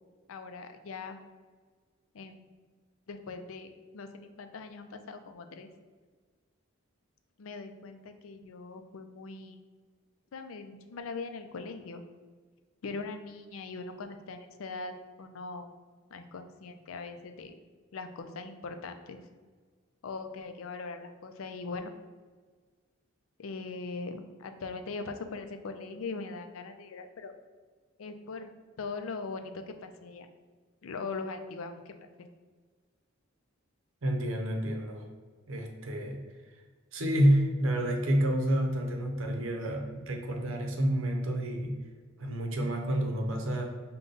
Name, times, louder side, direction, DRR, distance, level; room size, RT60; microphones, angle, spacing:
voice 1, 0.3-1.2 2.1-2.5 3.1-5.7 7.4-9.6 10.3-12.0 12.8-15.7 16.1-17.5 17.9-19.2 20.0-21.9 23.4-27.3 28.0-30.3 30.8-32.1, left 4 dB, 90° left, 7 dB, 0.4 m, -41 dB
voice 2, 34.0-35.1 35.5-36.2 36.9-41.8 42.2-43.6, equal, 70° right, 3 dB, 0.7 m, -29 dB
5.1 x 2.3 x 3.8 m, 1.5 s
head